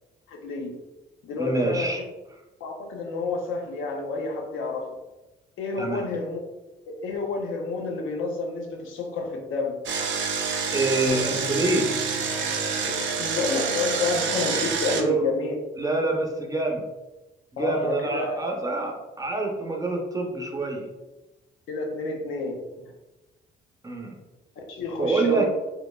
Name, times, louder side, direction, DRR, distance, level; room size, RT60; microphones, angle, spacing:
voice 1, 0.3-0.8 1.2-2.0 2.6-5.0 5.6-6.4 6.9-9.8 12.9-15.5 17.6-18.5 21.7-22.9 24.6-25.4, left 3 dB, 85° left, 1 dB, 0.7 m, -29 dB
voice 2, 1.4-2.0 5.8-6.1 10.7-11.9 15.0-15.3 15.8-16.8 17.5-20.9 23.8-24.1 25.0-25.4, right 2 dB, 15° right, 0 dB, 0.7 m, -26 dB
Engine, 9.9-15.0, right 5 dB, 70° right, 0.6 m, -27 dB
sound 1, 11.1-13.7, left 2 dB, 55° left, 0.5 m, -37 dB
4.3 x 2.6 x 2.3 m, 1.0 s
cardioid pair, 90°, 20 cm